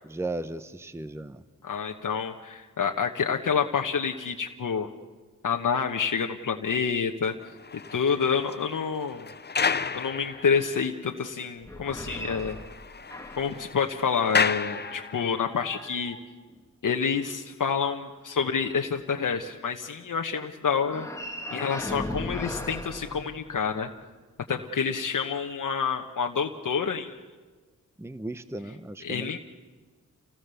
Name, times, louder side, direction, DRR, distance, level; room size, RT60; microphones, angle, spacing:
voice 1, 0.1-1.4 28.0-29.4, right 2 dB, 10° right, 12 dB, 0.8 m, -36 dB
voice 2, 1.6-4.9 5.4-7.3 7.9-9.3 9.9-12.6 13.4-16.2 16.8-21.1 21.5-23.9 24.5-27.2 29.0-29.4, left 6 dB, 70° left, 3 dB, 1.2 m, -28 dB
sound 1, 7.4-10.9 11.4-11.5 11.9-12.0 12.3-15.5, left 5 dB, 30° left, 0.7 m, -32 dB
sound 2, 11.6-13.6 14.3-16.7 20.8-23.9, left 1 dB, 10° left, 1.7 m, -38 dB
28.0 x 18.0 x 7.0 m, 1.4 s
cardioid pair, 65°, 33 cm